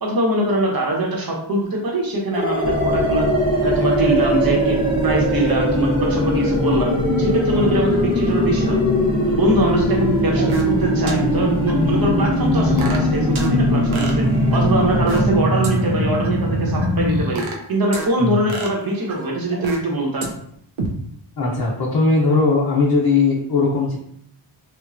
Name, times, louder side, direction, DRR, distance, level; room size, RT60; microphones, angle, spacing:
voice 1, 0.0-3.3 3.6-6.9 7.2-8.8 9.3-14.2 14.5-17.4 17.7-20.3, right 1 dB, 50° right, -1 dB, 0.9 m, -22 dB
sound 1, 2.3-17.2, equal, 10° right, 0.9 m, -20 dB
sound 2, 2.6-15.3, left 1 dB, 15° left, 0.4 m, -26 dB
sound 3, 10.4-10.8 11.1-11.2 11.7-11.8 12.2-13.5 13.9-15.4 15.6-15.7 16.2-16.3 16.8-18.1 18.5-19.9 20.2-20.3 20.8-20.9, right 3 dB, 75° right, 0.6 m, -31 dB
voice 2, 21.4-24.0, left 3 dB, 55° left, -5 dB, 0.7 m, -18 dB
3.1 x 2.2 x 2.5 m, 0.69 s
wide cardioid pair, 60°, 48 cm